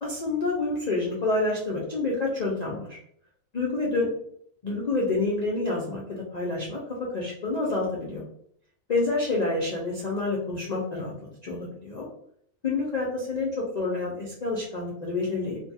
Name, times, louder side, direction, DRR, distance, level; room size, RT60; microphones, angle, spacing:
voice 1, 0.0-3.0 3.5-4.1 4.6-6.8 7.1-8.2 8.9-11.1 11.4-12.1 12.6-13.5 13.7-15.6, left 3 dB, 60° left, -5 dB, 0.4 m, -28 dB
2.6 x 2.3 x 2.6 m, 0.66 s
omnidirectional pair, 1.4 m